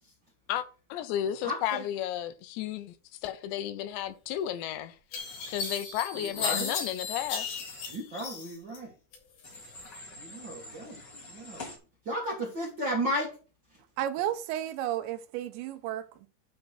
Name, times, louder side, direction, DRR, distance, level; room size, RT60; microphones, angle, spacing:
voice 1, 0.5-2.9 3.2-5.0 5.5-7.6, left 11 dB, 80° left, 2.8 m, -33 dB
voice 2, 1.4-1.8 6.4-6.7 7.9-8.9 10.2-11.0 11.3-11.7 12.0-13.3, equal, 50° right, 1.3 m, -33 dB
sound 1, 4.4-4.5 5.1-8.8 9.1-9.9, left 5 dB, 60° left, 4.0 m, -36 dB
Human voice / Train, 5.1-5.7 7.1-7.9 9.4-11.8, left 2 dB, 30° left, 2.2 m, -46 dB
voice 3, 14.0-16.3, right 12 dB, 85° right, 2.8 m, -33 dB
9.7 x 3.8 x 6.0 m
omnidirectional pair, 5.3 m